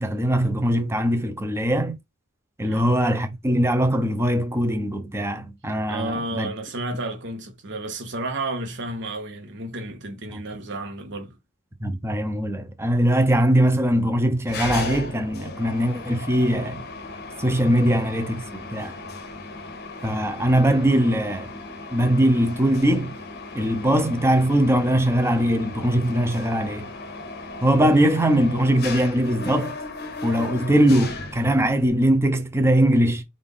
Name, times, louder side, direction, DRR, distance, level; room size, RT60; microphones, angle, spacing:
voice 1, 0.0-1.9 2.6-6.5 10.3-10.4 11.8-16.8 17.4-19.0 20.0-21.5 21.9-23.1 23.5-26.9 27.6-29.7 30.2-33.2, right 1 dB, 10° right, 0.6 m, -21 dB
voice 2, 5.9-11.4 20.3-20.5, right 2 dB, 55° right, 1.1 m, -32 dB
Mechanisms, 14.5-31.9, left 3 dB, 50° left, 0.7 m, -36 dB
3.5 x 2.5 x 3.7 m
head